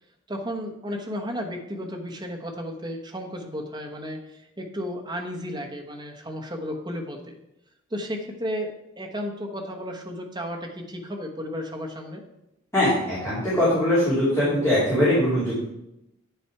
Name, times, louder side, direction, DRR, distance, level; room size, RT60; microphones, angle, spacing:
voice 1, 0.3-7.4 7.9-12.2, equal, 20° right, 2 dB, 1.0 m, -33 dB
voice 2, 12.7-15.6, left 1 dB, 15° left, -11 dB, 2.8 m, -21 dB
8.8 x 5.7 x 4.7 m, 0.87 s
head